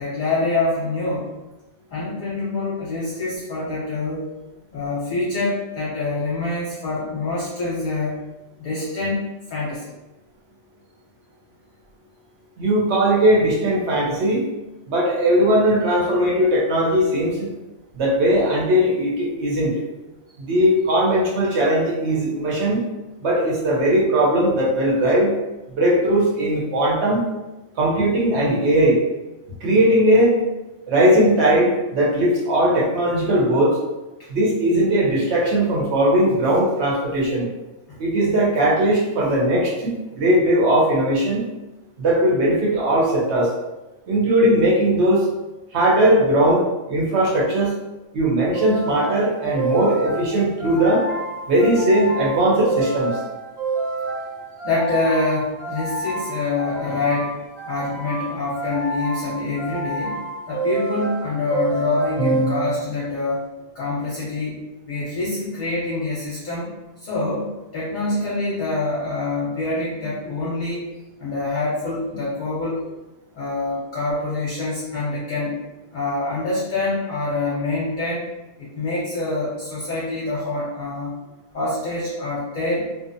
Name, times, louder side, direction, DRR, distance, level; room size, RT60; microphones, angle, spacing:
voice 1, 0.0-1.3 1.9-4.3 4.7-8.2 8.6-9.2 9.5-9.9 37.9-38.0 54.6-57.3 57.7-60.2 60.5-63.4 63.7-66.7 67.0-67.5 67.7-70.8 71.2-72.8 73.3-75.6 75.9-78.2 78.6-81.1 81.5-82.9, left 2 dB, 45° left, -8 dB, 0.7 m, -25 dB
voice 2, 12.6-14.5 14.9-17.5 17.9-19.8 20.5-22.9 23.2-25.3 25.8-27.2 27.8-29.0 29.6-30.3 30.9-33.8 34.3-37.5 38.0-41.5 42.0-43.5 44.1-45.3 45.7-46.6 46.9-47.7 48.1-51.0 51.5-53.2, right 1 dB, 65° right, -4 dB, 0.9 m, -19 dB
sound 1, 48.5-63.1, right 2 dB, 25° right, 0.7 m, -28 dB
2.6 x 2.1 x 2.5 m, 1.0 s
omnidirectional pair, 1.3 m